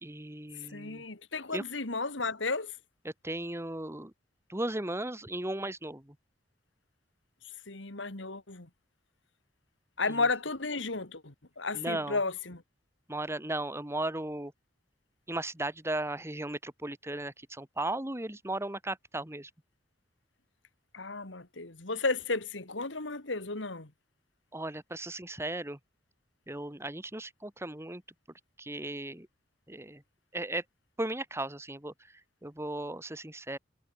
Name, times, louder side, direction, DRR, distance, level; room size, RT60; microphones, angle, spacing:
voice 1, 0.0-1.1 1.5-1.6 3.0-4.1 4.5-6.2 10.1-10.2 11.7-12.2 13.1-14.5 15.3-19.5 24.5-25.8 26.5-28.0 28.6-29.3 29.7-30.0 30.3-30.6 31.0-33.6, right 1 dB, 15° right, 1.8 m, -36 dB
voice 2, 0.7-2.7 7.7-8.7 10.0-12.6 20.9-23.9, left 3 dB, 70° left, 2.6 m, -33 dB
head